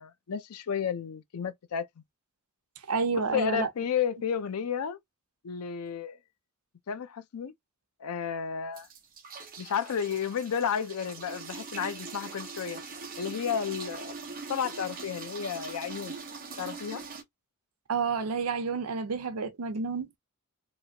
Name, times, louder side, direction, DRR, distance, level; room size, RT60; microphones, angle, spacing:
voice 1, 0.0-1.9 3.1-5.0 5.4-6.2 6.9-7.5 8.0-8.9 9.6-12.8 13.2-14.1 14.5-16.2 16.6-17.0, left 7 dB, 85° left, 0.5 m, -32 dB
voice 2, 2.9-3.7 17.9-20.1, right 4 dB, 85° right, 0.6 m, -29 dB
sound 1, 8.7-17.2, right 4 dB, 40° right, 0.7 m, -42 dB
3.0 x 2.4 x 2.8 m
head